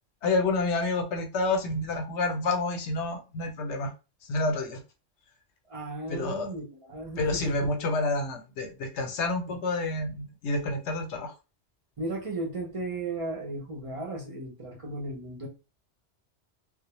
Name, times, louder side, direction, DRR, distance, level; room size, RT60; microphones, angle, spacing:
voice 1, 0.2-3.9 4.3-4.8 6.1-6.5 7.2-11.3, left 2 dB, 80° left, 0.9 m, -29 dB
voice 2, 5.7-7.7 9.5-9.6 12.0-15.5, right 2 dB, 40° right, 0.5 m, -35 dB
2.1 x 2.1 x 2.9 m
omnidirectional pair, 1.2 m